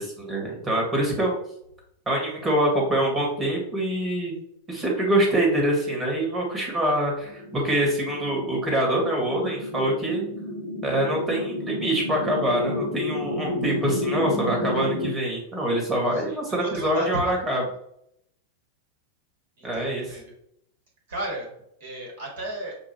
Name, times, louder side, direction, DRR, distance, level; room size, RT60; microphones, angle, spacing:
voice 1, 0.0-1.3 2.0-4.4 4.7-10.2 10.8-17.6 19.6-20.2, right 1 dB, 15° right, -1 dB, 1.6 m, -25 dB
sound 1, 7.2-15.1, left 1 dB, 75° left, 1.5 m, -31 dB
voice 2, 16.1-17.3 19.6-20.3 21.1-21.5 21.8-22.8, equal, 55° right, -1 dB, 1.7 m, -34 dB
7.0 x 2.3 x 2.9 m, 0.75 s
figure-of-eight pair, 90°, 0 cm